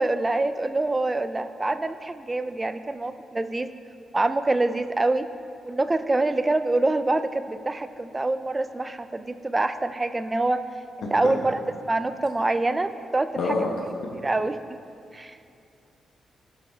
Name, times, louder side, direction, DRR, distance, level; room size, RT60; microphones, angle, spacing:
voice 1, 0.0-3.7 4.1-5.3 5.6-10.6 11.1-11.6 11.9-13.3 14.2-14.6 15.1-15.4, right 2 dB, 15° right, 11 dB, 0.3 m, -25 dB
voice 2, 11.0-11.3 13.4-13.7, left 3 dB, 65° left, -1 dB, 1.1 m, -27 dB
16.0 x 5.7 x 3.5 m, 2.5 s
wide cardioid pair, 165°, 0 cm